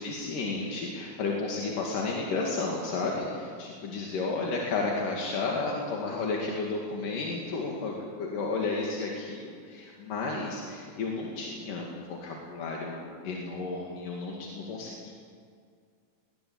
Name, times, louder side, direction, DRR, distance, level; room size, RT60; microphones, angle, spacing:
voice 1, 0.0-15.1, left 3 dB, 80° left, -2 dB, 3.9 m, -32 dB
20.0 x 20.0 x 8.8 m, 2.2 s
omnidirectional pair, 3.8 m